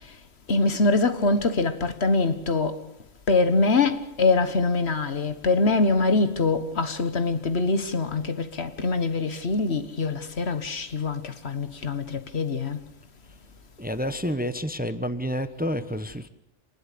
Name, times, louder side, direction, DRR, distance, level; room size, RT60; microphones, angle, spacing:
voice 1, 0.5-2.8 3.3-12.8, left 3 dB, 65° left, 1.6 m, -24 dB
voice 2, 13.8-16.3, equal, 10° right, 1.0 m, -29 dB
27.0 x 20.0 x 6.9 m
omnidirectional pair, 1.2 m